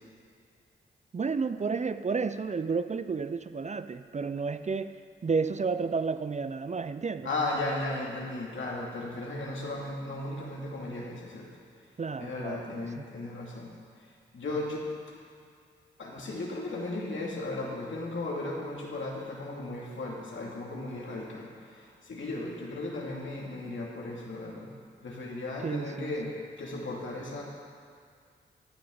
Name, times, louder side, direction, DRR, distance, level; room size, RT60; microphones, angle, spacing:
voice 1, 1.1-7.3 12.0-13.0 25.6-26.1, right 5 dB, 35° right, 12 dB, 0.5 m, -31 dB
voice 2, 7.2-11.5 12.2-13.7 14.0-14.9 16.0-24.7 25.0-27.4, left 2 dB, 65° left, -3 dB, 2.5 m, -36 dB
16.0 x 9.4 x 3.9 m, 2.2 s
supercardioid pair, 40°, 21 cm